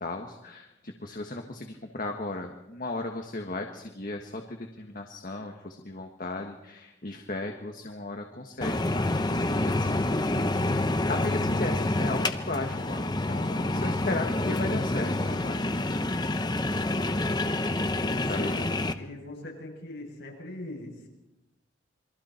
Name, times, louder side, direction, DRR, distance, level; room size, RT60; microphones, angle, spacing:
voice 1, 0.0-10.0 10.3-15.6 18.3-18.6, left 2 dB, 45° left, 3 dB, 1.6 m, -36 dB
sound 1, 8.6-18.9, left 2 dB, 20° left, 0.8 m, -27 dB
voice 2, 18.0-21.1, left 1 dB, 60° left, -2 dB, 8.0 m, -41 dB
27.5 x 23.0 x 4.5 m, 0.96 s
head